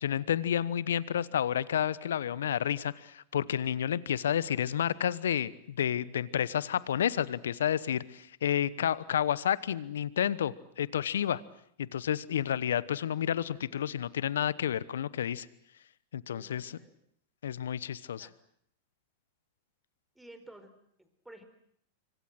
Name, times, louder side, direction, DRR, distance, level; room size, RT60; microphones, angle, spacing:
voice 1, 0.0-11.4 11.8-15.5 16.1-16.8 17.4-18.3, left 9 dB, 75° left, 20 dB, 1.0 m, -30 dB
voice 2, 16.3-17.0 18.2-18.3 20.1-20.7 21.0-21.4, right 1 dB, 5° right, 9 dB, 4.8 m, -53 dB
25.5 x 25.0 x 7.8 m, 0.68 s
hypercardioid pair, 100°, 0 cm